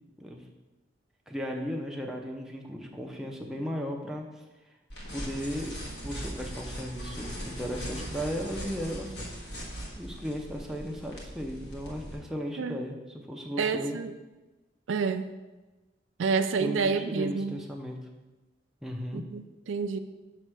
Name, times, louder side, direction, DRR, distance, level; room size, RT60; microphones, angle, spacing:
voice 1, 1.3-4.3 5.1-5.7 6.0-9.1 10.0-14.0 16.6-18.0 18.8-19.2, equal, ahead, 0 dB, 0.6 m, -36 dB
sound 1, 4.9-12.2, equal, 60° left, 1.5 m, -39 dB
voice 2, 13.6-14.1 14.9-15.3 16.2-17.6 19.1-20.0, right 5 dB, 90° right, 9 dB, 0.4 m, -29 dB
6.5 x 3.3 x 6.0 m, 1.1 s
head